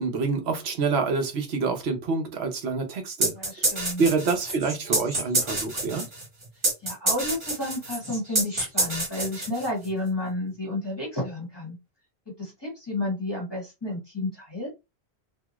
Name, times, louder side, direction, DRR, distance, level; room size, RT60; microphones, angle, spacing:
voice 1, 0.0-3.3 3.7-6.1, right 4 dB, 90° right, 1.1 m, -27 dB
sound 1, 3.2-9.9, right 2 dB, 30° right, 1.0 m, -27 dB
voice 2, 3.3-4.0 6.8-11.8 12.4-14.7, left 1 dB, 25° left, 1.2 m, -31 dB
2.6 x 2.3 x 3.0 m
omnidirectional pair, 1.0 m